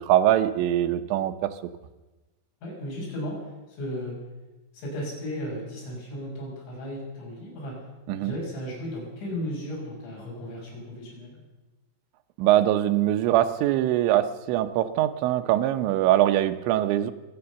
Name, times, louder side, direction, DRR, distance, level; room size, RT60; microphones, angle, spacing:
voice 1, 0.0-1.5 8.1-8.3 12.4-17.1, right 12 dB, 90° right, 10 dB, 3.1 m, -22 dB
voice 2, 2.6-3.4 3.8-4.1 4.7-7.8 8.2-11.4, equal, 90° left, -3 dB, 8.3 m, -35 dB
23.5 x 8.8 x 7.0 m, 1.1 s
omnidirectional pair, 5.1 m